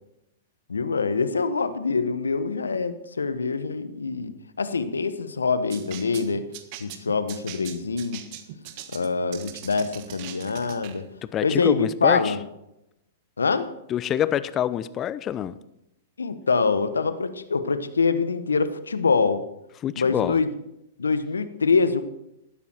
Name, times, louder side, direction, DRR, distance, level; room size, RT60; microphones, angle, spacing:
voice 1, 0.7-6.5 6.8-8.2 8.9-11.1 11.4-12.4 13.4-13.7 16.2-19.4 20.0-20.5 21.0-22.0, left 4 dB, 85° left, 12 dB, 1.1 m, -24 dB
sound 1, 5.7-11.0, right 11 dB, 50° right, 1.5 m, -41 dB
voice 2, 11.3-12.4 13.9-15.6 19.8-20.4, left 10 dB, 30° left, 16 dB, 0.7 m, -26 dB
15.0 x 12.5 x 4.5 m, 0.86 s
hypercardioid pair, 110°, 0 cm